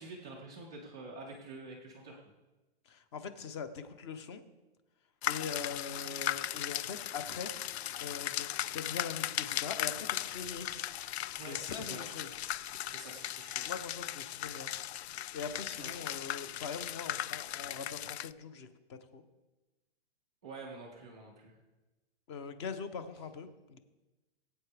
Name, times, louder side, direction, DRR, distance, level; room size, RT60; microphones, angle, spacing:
voice 1, 0.0-2.2 11.4-12.0 12.8-13.7 15.8-16.0 20.4-21.6, right 3 dB, 5° right, -6 dB, 0.3 m, -47 dB
voice 2, 2.9-4.4 5.3-7.5 8.0-10.8 11.5-12.3 13.6-14.7 15.3-19.2 22.3-23.8, left 5 dB, 25° left, 11 dB, 0.6 m, -42 dB
sound 1, 5.2-18.3, left 12 dB, 70° left, 0.5 m, -37 dB
20.5 x 8.6 x 3.4 m, 1.1 s
hypercardioid pair, 165°, 34 cm